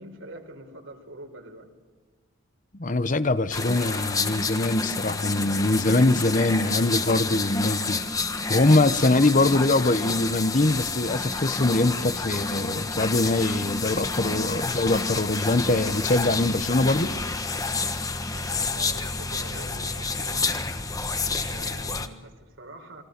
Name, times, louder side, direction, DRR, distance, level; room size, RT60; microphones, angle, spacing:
voice 1, 0.0-1.7 18.3-20.6 21.4-23.0, right 1 dB, 75° right, 4.3 m, -44 dB
voice 2, 2.7-17.1, left 2 dB, 40° left, 0.9 m, -23 dB
sound 1, 3.5-22.1, left 3 dB, 15° left, 1.3 m, -29 dB
29.5 x 21.5 x 6.7 m
head